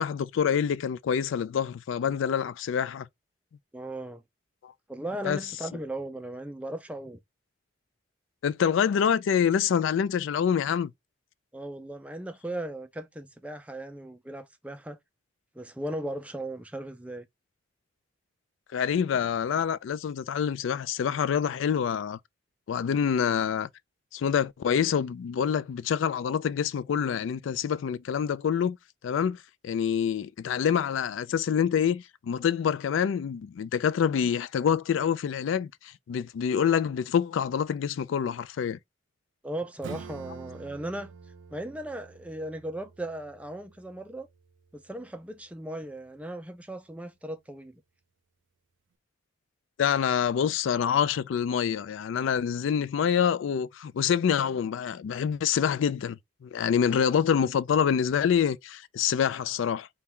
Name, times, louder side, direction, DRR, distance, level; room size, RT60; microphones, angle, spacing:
voice 1, 0.0-3.1 4.6-4.7 5.2-5.4 8.4-10.9 18.7-22.2 22.7-23.7 24.1-28.8 29.0-29.4 29.6-38.8 49.8-59.9, left 8 dB, 75° left, 0.3 m, -26 dB
voice 2, 3.7-4.2 4.9-7.2 11.5-15.0 15.5-17.3 39.4-41.1 41.5-44.3 44.7-47.8, right 1 dB, 5° right, 0.3 m, -37 dB
Acoustic guitar / Strum, 39.8-45.0, right 5 dB, 70° right, 0.5 m, -47 dB
4.3 x 2.3 x 3.5 m
head